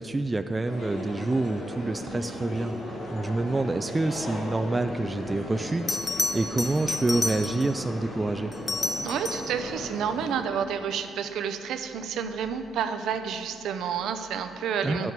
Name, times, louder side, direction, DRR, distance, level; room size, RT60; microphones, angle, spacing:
voice 1, 0.0-8.5 14.8-15.1, right 2 dB, 20° right, 8 dB, 0.3 m, -28 dB
sound 1, 0.6-10.4, left 1 dB, 70° left, 2.6 m, -37 dB
Bell, 5.3-5.4 5.9-7.8 8.5-9.6 12.3-12.5, left 2 dB, 30° left, 0.7 m, -30 dB
voice 2, 9.0-15.1, right 7 dB, 80° right, 9 dB, 0.6 m, -30 dB
10.5 x 8.0 x 4.7 m, 2.7 s
cardioid pair, 90°, 0 cm